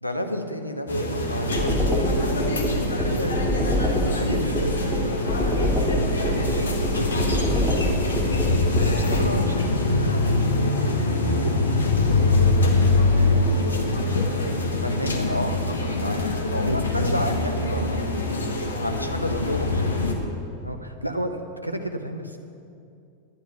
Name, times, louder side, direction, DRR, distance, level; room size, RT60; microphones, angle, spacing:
voice 1, 0.0-2.2 14.7-18.1 18.7-19.9, equal, 85° left, 6 dB, 0.9 m, -31 dB
sound 1, 0.9-20.1, left 2 dB, 70° left, 1.4 m, -24 dB
sound 2, 1.6-9.2, left 1 dB, ahead, 2.3 m, -24 dB
voice 2, 2.9-6.7 7.0-7.4 8.8-11.7 13.1-14.4 15.2-15.6 16.4-17.2 20.6-22.4, equal, 90° right, 5 dB, 0.9 m, -33 dB
11.5 x 10.5 x 5.7 m, 2.5 s
figure-of-eight pair, 90°, 0 cm